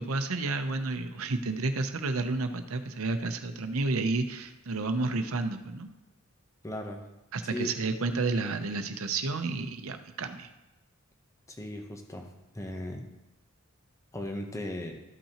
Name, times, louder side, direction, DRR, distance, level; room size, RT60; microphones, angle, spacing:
voice 1, 0.0-5.9 7.3-10.5, right 3 dB, 85° right, 8 dB, 0.7 m, -31 dB
voice 2, 6.6-7.0 7.5-7.7 11.5-12.3 12.5-13.0 14.1-15.0, left 1 dB, 15° left, 2 dB, 0.8 m, -36 dB
13.0 x 5.5 x 2.9 m, 0.99 s
head